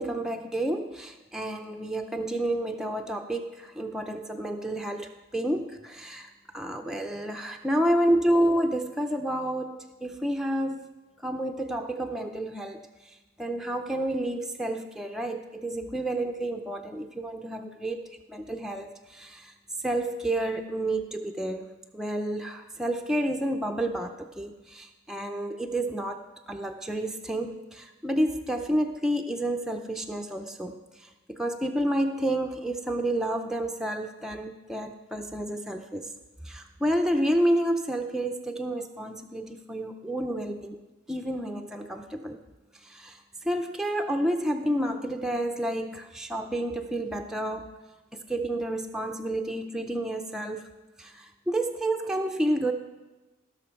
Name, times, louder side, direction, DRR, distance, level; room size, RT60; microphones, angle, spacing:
voice 1, 0.0-10.8 11.2-19.5 19.8-36.1 36.4-40.8 41.1-42.4 42.8-47.7 48.1-50.6 51.0-52.7, right 1 dB, ahead, 3 dB, 0.4 m, -30 dB
17.5 x 6.2 x 4.4 m, 1.1 s
head